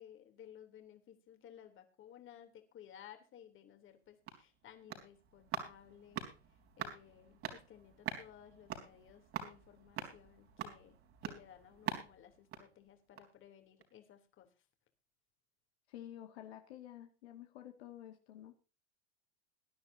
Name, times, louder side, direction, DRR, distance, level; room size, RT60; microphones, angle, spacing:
voice 1, 0.0-6.2 6.5-14.6, left 10 dB, 40° left, 6 dB, 3.1 m, -58 dB
sound 1, 3.9-13.5 13.8-13.9, right 9 dB, 45° right, 3.9 m, -46 dB
voice 2, 15.9-18.5, left 12 dB, 75° left, 5 dB, 2.1 m, -51 dB
21.5 x 10.0 x 2.7 m, 0.34 s
hypercardioid pair, 105°, 33 cm